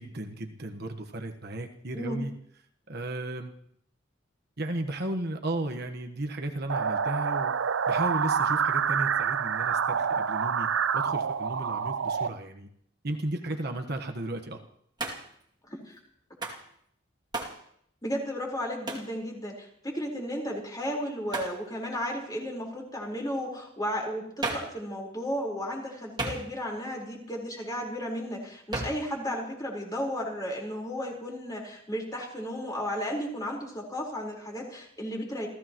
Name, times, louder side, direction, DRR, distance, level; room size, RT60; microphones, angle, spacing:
voice 1, 0.0-2.3 2.9-3.5 4.6-7.5 7.9-12.7 13.0-14.6, right 1 dB, 55° right, 4 dB, 1.4 m, -34 dB
sound 1, 6.7-12.3, right 6 dB, 75° right, 0.6 m, -27 dB
Hands, 15.0-15.4 16.4-16.7 17.3-17.6 18.9-19.1 21.3-21.6 24.4-24.8 26.2-26.8 28.7-29.1, right 2 dB, 20° right, 2.5 m, -34 dB
voice 2, 18.0-35.5, equal, 20° left, -1 dB, 4.5 m, -34 dB
29.0 x 15.0 x 3.1 m, 0.67 s
head